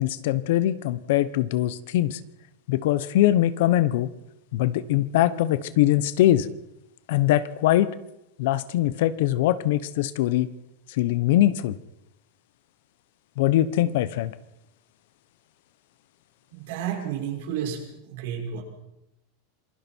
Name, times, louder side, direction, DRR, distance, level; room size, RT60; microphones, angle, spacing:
voice 1, 0.0-2.2 2.7-4.1 4.5-6.5 7.1-7.9 8.4-10.5 10.9-11.8 13.4-14.3, left 13 dB, 65° left, 16 dB, 1.0 m, -22 dB
voice 2, 16.5-17.8 18.1-18.6, right 9 dB, 70° right, 0 dB, 6.1 m, -31 dB
27.0 x 21.0 x 4.6 m, 0.88 s
supercardioid pair, 160°, 0 cm